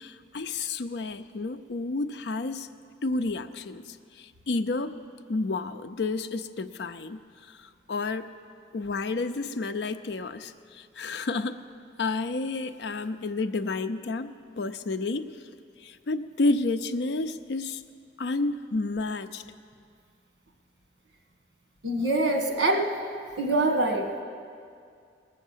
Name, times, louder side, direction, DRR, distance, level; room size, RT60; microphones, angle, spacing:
voice 1, 0.0-2.7 3.0-3.8 4.2-4.9 5.3-7.2 7.5-7.6 7.9-8.3 8.7-11.6 12.0-15.3 15.8-17.8 18.2-19.4, left 3 dB, 65° left, 9 dB, 0.5 m, -30 dB
voice 2, 21.8-22.9 23.4-24.2, right 2 dB, 90° right, 3 dB, 1.7 m, -24 dB
18.5 x 7.0 x 7.3 m, 2.3 s
head